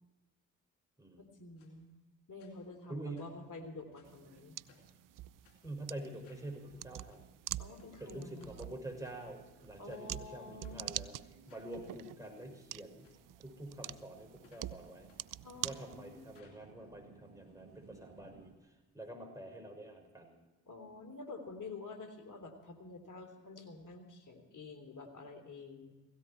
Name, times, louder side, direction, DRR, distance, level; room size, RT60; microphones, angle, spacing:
voice 1, 1.2-1.9 2.3-4.5 7.6-8.5 9.8-11.0 15.4-16.1 16.5-16.7 20.7-25.9, left 3 dB, 50° left, 7 dB, 3.3 m, -49 dB
sound 1, 1.6-1.7 2.4-2.8 3.2-4.2 4.7-5.0 5.4-5.6 6.2-6.5 6.9-7.2 7.8-8.0 8.4-8.6 9.0-9.5 9.9-10.1 10.6-10.8 11.5-11.7 12.2-12.4 13.0-13.2 13.8-14.8 15.1-15.2 15.7-15.9 16.3-17.9 18.2-18.3 18.5-18.6, left 7 dB, 85° left, 2.7 m, -67 dB
voice 2, 2.9-3.3 5.6-7.2 8.0-11.2 11.5-13.1 13.4-15.1 15.6-18.5 18.9-20.3, right 1 dB, 10° right, 2 dB, 5.9 m, -46 dB
sound 2, 3.0-18.6, right 5 dB, 80° right, 1.7 m, -63 dB
sound 3, 4.0-16.4, right 14 dB, 60° right, 0.5 m, -46 dB
17.0 x 16.5 x 4.5 m, 1.1 s
hypercardioid pair, 40°, 38 cm